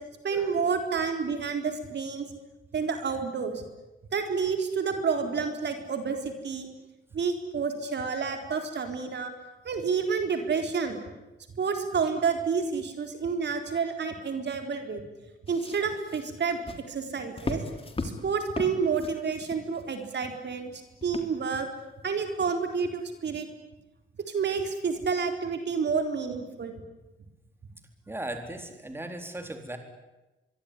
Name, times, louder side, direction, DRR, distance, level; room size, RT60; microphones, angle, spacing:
voice 1, 0.2-2.3 2.7-3.6 4.1-6.7 7.1-9.3 9.6-11.0 11.6-15.0 15.5-17.6 18.0-20.7 21.0-21.7 22.0-23.5 24.3-26.8, right 5 dB, 60° right, 5 dB, 4.1 m, -29 dB
sound 1, 15.5-20.2 21.0-21.6 22.2-22.3, left 3 dB, 30° left, 3.4 m, -38 dB
voice 2, 28.1-29.8, right 1 dB, 10° right, 5 dB, 3.9 m, -37 dB
25.0 x 23.0 x 10.0 m, 1.0 s
cardioid pair, 115°, 20 cm